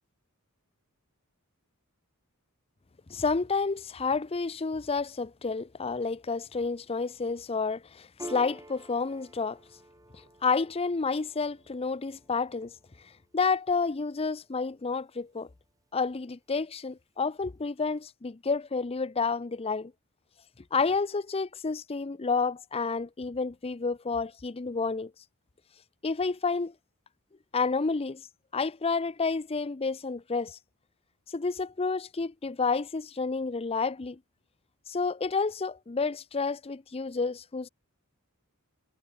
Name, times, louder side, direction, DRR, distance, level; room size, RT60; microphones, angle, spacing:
voice 1, 3.1-9.6 10.4-12.7 13.3-15.5 15.9-19.9 20.7-25.1 26.0-26.7 27.5-28.2 28.5-30.6 31.3-34.2 34.9-37.7, left 4 dB, 25° left, 0.5 m, -30 dB
Piano, 8.2-15.1, right 1 dB, 15° right, 6.8 m, -50 dB
head